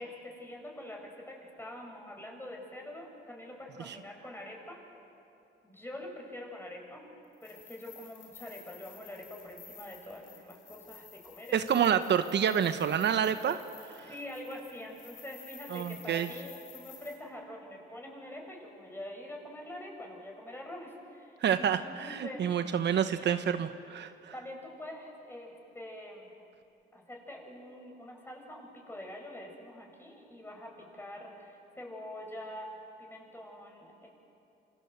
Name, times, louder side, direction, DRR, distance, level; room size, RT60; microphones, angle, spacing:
voice 1, 0.0-4.8 5.6-7.0 7.4-11.6 14.0-22.5 23.2-23.3 23.9-24.0 24.3-26.3 26.9-34.1, left 1 dB, 10° left, 0 dB, 7.7 m, -45 dB
sound 1, 7.3-17.2, left 7 dB, 75° left, 6.2 m, -53 dB
voice 2, 11.5-13.6 13.9-14.0 15.7-16.3 21.4-24.3, right 8 dB, 60° right, 9 dB, 1.1 m, -28 dB
28.5 x 26.0 x 8.1 m, 2.7 s
cardioid pair, 90°, 20 cm